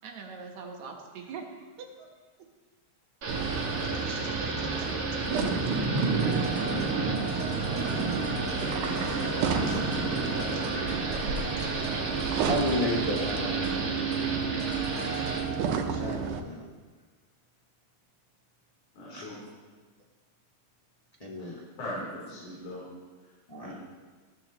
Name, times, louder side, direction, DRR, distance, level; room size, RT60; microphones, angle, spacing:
voice 1, 0.0-2.1 2.4-2.5 3.8-5.2, right 5 dB, 70° right, 2 dB, 2.5 m, -44 dB
Thunder / Rain, 3.2-15.4, right 3 dB, 50° right, 2.4 m, -32 dB
sound 1, 3.3-16.4, right 6 dB, 85° right, 2.3 m, -32 dB
sound 2, 6.2-15.8, right 2 dB, 5° right, 2.6 m, -39 dB
voice 2, 10.5-11.1 11.6-12.1 12.4-13.8 15.9-16.7 19.1-19.2 21.2-21.6 23.5-23.7, left 1 dB, 35° left, -3 dB, 0.5 m, -33 dB
voice 3, 18.9-19.3 21.4-22.8 23.6-23.7, left 1 dB, 80° left, -8 dB, 4.9 m, -39 dB
15.0 x 14.0 x 3.0 m, 1.4 s
omnidirectional pair, 3.5 m